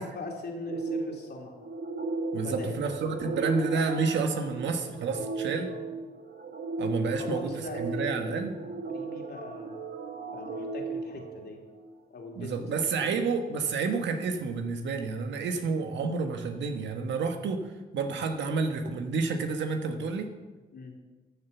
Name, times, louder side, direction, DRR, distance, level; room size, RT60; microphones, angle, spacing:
voice 1, 0.0-1.6 2.3-3.3 5.7-5.8 7.2-9.8 10.3-11.6 12.1-12.7 13.0-13.2 15.5-15.9 18.0-18.2 20.7-20.9, left 3 dB, 65° left, 1 dB, 3.0 m, -41 dB
sound 1, 0.6-11.9, right 3 dB, 60° right, 1.7 m, -36 dB
voice 2, 2.3-5.7 6.8-7.5 7.8-8.5 12.4-17.7 17.9-20.3, right 4 dB, 85° right, 6 dB, 1.4 m, -30 dB
13.0 x 7.2 x 7.1 m, 1.2 s
cardioid pair, 65°, 18 cm